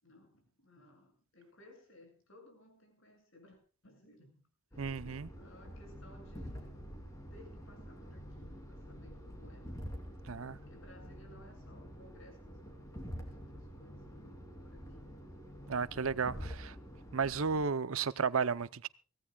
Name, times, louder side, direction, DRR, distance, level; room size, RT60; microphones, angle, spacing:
voice 1, 0.0-4.4 4.7-6.7 7.3-9.7 10.7-15.1, left 1 dB, 60° left, 7.2 m, -60 dB
sound 1, 4.7-17.6, equal, 15° left, 3.0 m, -47 dB
voice 2, 4.8-5.3 10.3-10.6 15.7-16.8 17.1-18.9, right 5 dB, 65° right, 0.7 m, -33 dB
24.0 x 17.5 x 2.3 m
head